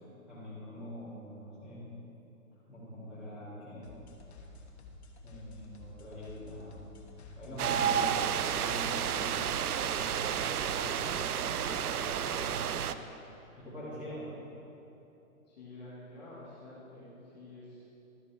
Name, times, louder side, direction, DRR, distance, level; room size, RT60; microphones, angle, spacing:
voice 1, 0.3-1.8 2.7-3.8 5.2-6.8 7.4-9.4 10.0-12.7 13.6-14.3, left 1 dB, 5° right, -14 dB, 2.2 m, -44 dB
sound 1, 3.8-11.5, left 2 dB, 50° left, 1.2 m, -51 dB
sound 2, 7.6-12.9, right 8 dB, 85° right, 0.6 m, -31 dB
voice 2, 15.5-17.8, left 2 dB, 30° left, -8 dB, 1.9 m, -49 dB
12.5 x 9.5 x 3.4 m, 3.0 s
hypercardioid pair, 180°, 43 cm